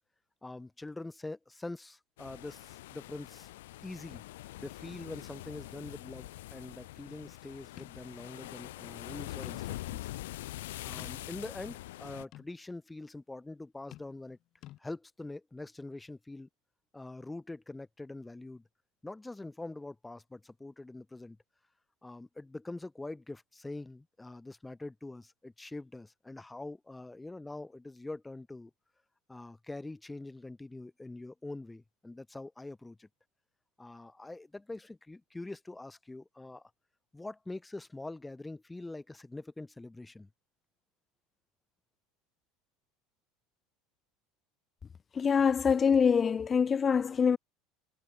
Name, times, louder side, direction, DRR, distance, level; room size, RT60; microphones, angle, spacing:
voice 1, 0.4-3.5 3.8-4.2 4.6-10.1 10.8-14.4 14.8-16.5 16.9-18.6 19.0-21.4 22.0-28.7 29.3-33.1 33.8-36.7 37.1-40.3, left 2 dB, 10° left, 4.9 m, -44 dB
sound 1, 2.2-12.2, left 17 dB, 90° left, 3.4 m, -44 dB
sound 2, 7.8-8.0 8.4-8.5 9.4-9.8 10.3-10.4 11.0-11.5 12.3-12.6 13.9-14.4 14.6-14.8, left 14 dB, 50° left, 6.6 m, -52 dB
voice 2, 45.1-47.4, left 6 dB, 30° left, 0.7 m, -25 dB
supercardioid pair, 110°, 0 cm